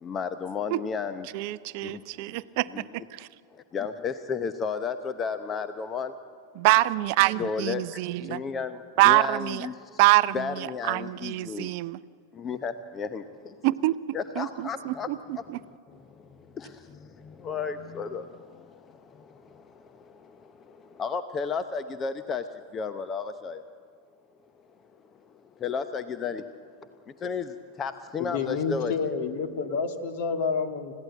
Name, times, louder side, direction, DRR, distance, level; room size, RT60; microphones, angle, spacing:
voice 1, 0.0-1.3 1.8-2.0 2.3-2.4 2.7-2.9 3.5-6.1 7.4-10.0 10.3-11.7 12.3-13.6 14.1-23.6 24.8-24.9 25.3-28.9, left 5 dB, 25° left, 11 dB, 0.8 m, -34 dB
voice 2, 1.3-3.3 6.6-8.4 9.0-9.7 10.0-12.0 13.6-14.0 14.4-15.6, right 19 dB, 45° right, 17 dB, 0.5 m, -25 dB
voice 3, 28.2-30.9, left 5 dB, 50° left, 7 dB, 1.9 m, -29 dB
29.5 x 16.0 x 8.3 m, 2.2 s
figure-of-eight pair, 90°, 0 cm